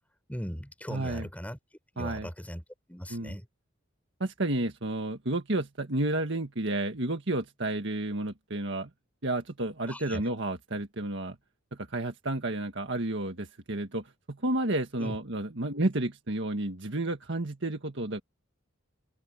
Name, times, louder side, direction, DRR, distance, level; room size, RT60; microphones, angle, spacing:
voice 1, 0.3-1.6 1.9-2.6 2.9-3.5 9.9-10.2 15.0-15.2, equal, 5° left, 4.9 m, -38 dB
voice 2, 0.9-1.3 2.0-2.3 3.1-3.3 4.2-8.9 9.2-11.4 11.7-18.2, right 2 dB, 60° right, 1.7 m, -31 dB
open air
head